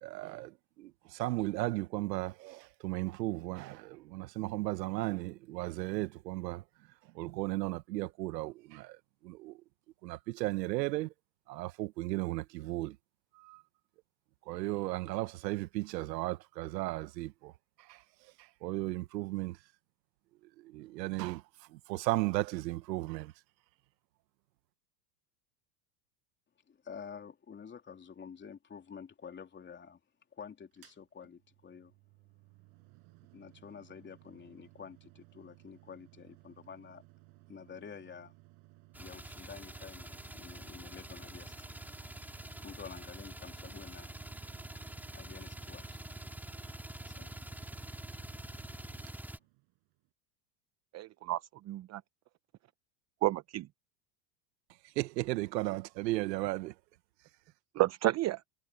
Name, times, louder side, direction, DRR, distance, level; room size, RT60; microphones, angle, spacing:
voice 1, 0.0-6.6 7.1-9.0 9.2-9.6 10.0-11.1 11.5-13.0 13.4-13.6 14.5-17.5 17.9-18.0 18.4-19.6 20.6-21.4 21.7-23.3 55.0-56.7, right 19 dB, 85° right, 1.1 m, -35 dB
voice 2, 26.7-30.0 30.3-31.9 33.3-37.0 37.5-38.3 39.0-41.7 42.6-44.1 45.1-45.8 47.0-47.3, left 6 dB, 20° left, 3.4 m, -49 dB
Mechanical fan, 30.7-50.1, right 25 dB, 55° right, 7.6 m, -60 dB
sound 1, 38.9-49.4, right 1 dB, 5° right, 3.3 m, -46 dB
voice 3, 50.9-52.0 53.2-53.7 57.8-58.4, right 16 dB, 35° right, 0.7 m, -31 dB
supercardioid pair, 125°, 48 cm